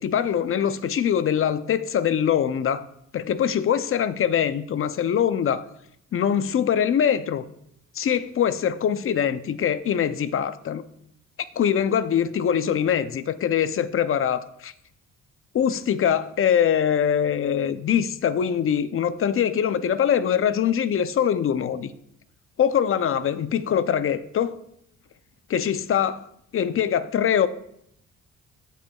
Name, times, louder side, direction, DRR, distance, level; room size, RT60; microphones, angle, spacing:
voice 1, 0.0-2.9 3.1-5.6 6.1-7.4 8.0-10.8 11.6-14.7 15.5-21.9 22.6-24.6 25.5-26.2 26.5-27.5, left 8 dB, 45° left, 0.5 m, -23 dB
15.5 x 5.2 x 2.3 m
cardioid pair, 90°, 30 cm